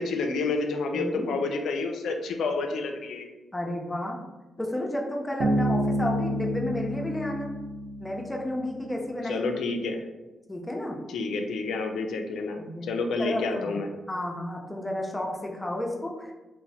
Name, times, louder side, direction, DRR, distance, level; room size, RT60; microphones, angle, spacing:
voice 1, 0.0-3.3 9.3-10.0 11.1-13.9, left 3 dB, 80° left, 5 dB, 0.3 m, -29 dB
voice 2, 0.9-1.3 3.5-4.2 4.6-7.5 8.0-9.4 10.5-11.0 12.5-12.9 13.2-13.8 14.1-16.3, left 1 dB, 15° left, 0 dB, 0.5 m, -32 dB
Bass guitar, 5.4-8.9, equal, 70° right, 0.5 m, -29 dB
2.9 x 2.0 x 2.6 m, 1.1 s
cardioid pair, 65°, 0 cm